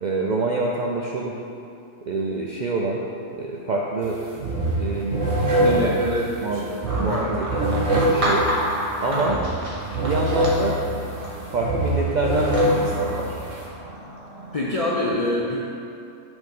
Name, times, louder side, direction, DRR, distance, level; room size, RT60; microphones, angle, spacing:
voice 1, 0.0-1.3 2.1-3.0 3.3-5.9 6.4-6.7 7.0-8.5 9.0-9.4 9.9-10.8 11.5-13.4, right 3 dB, 60° right, -2 dB, 0.4 m, -26 dB
sound 1, 4.0-4.2 4.4-13.7, right 1 dB, 85° right, 1.5 m, -24 dB
voice 2, 5.6-7.4 9.1-9.4 14.5-15.7, left 1 dB, 50° left, -4 dB, 0.4 m, -26 dB
sound 2, 6.8-14.7, right 1 dB, 30° right, 1.0 m, -31 dB
6.1 x 3.8 x 5.2 m, 2.6 s
omnidirectional pair, 1.3 m